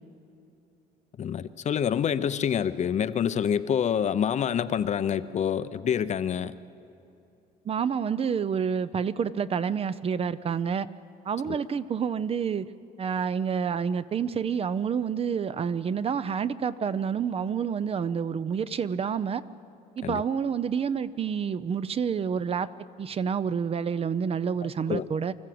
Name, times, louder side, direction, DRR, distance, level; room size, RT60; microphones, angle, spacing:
voice 1, 1.2-6.5 11.5-11.6 20.0-20.2 24.9-25.1, left 8 dB, 45° left, 13 dB, 0.6 m, -27 dB
voice 2, 7.7-10.9 11.3-12.7 13.0-19.4 20.0-22.7 23.0-25.3, right 7 dB, 35° right, 15 dB, 0.5 m, -28 dB
25.0 x 14.0 x 7.8 m, 2.8 s
cardioid pair, 110°, 17 cm